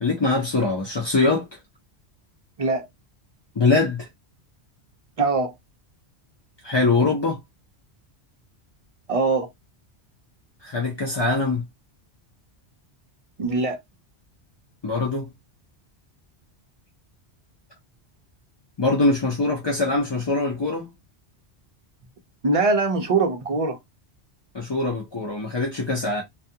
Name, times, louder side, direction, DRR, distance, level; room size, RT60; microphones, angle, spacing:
voice 1, 0.0-1.5 3.6-4.1 6.6-7.4 10.6-11.6 14.8-15.3 18.8-20.9 24.5-26.2, left 3 dB, 40° left, 0.4 m, -23 dB
voice 2, 5.2-5.5 9.1-9.5 13.4-13.8 22.4-23.8, right 3 dB, 50° right, 0.4 m, -22 dB
2.4 x 2.2 x 2.7 m
omnidirectional pair, 1.2 m